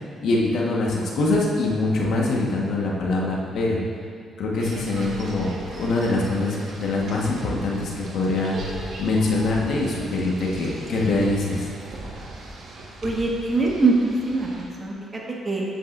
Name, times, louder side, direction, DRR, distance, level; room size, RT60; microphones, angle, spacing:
voice 1, 0.2-3.8 4.4-11.7, left 2 dB, 70° left, -3 dB, 1.5 m, -24 dB
sound 1, 4.6-14.6, right 2 dB, 65° right, 1.6 m, -39 dB
voice 2, 13.0-15.6, right 3 dB, 30° right, -3 dB, 1.6 m, -23 dB
9.3 x 8.6 x 2.7 m, 2.3 s
cardioid pair, 90°, 0 cm